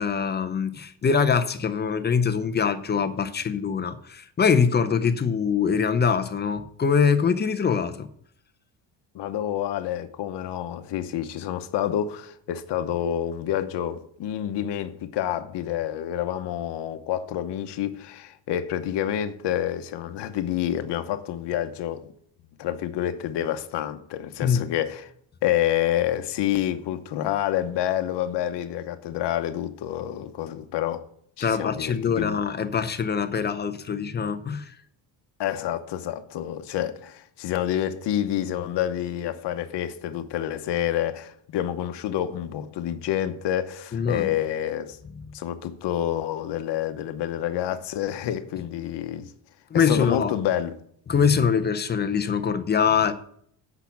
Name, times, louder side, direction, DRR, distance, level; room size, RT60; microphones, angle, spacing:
voice 1, 0.0-8.1 24.4-24.7 31.4-34.7 43.9-44.3 49.7-50.3 51.1-53.1, left 6 dB, 20° left, 0.5 m, -23 dB
voice 2, 9.1-22.1 22.6-25.1 25.4-31.0 31.4-32.4 35.4-45.0 45.3-49.3 49.7-50.8, left 11 dB, 60° left, 0.9 m, -28 dB
8.2 x 5.8 x 7.0 m
cardioid pair, 160°, 47 cm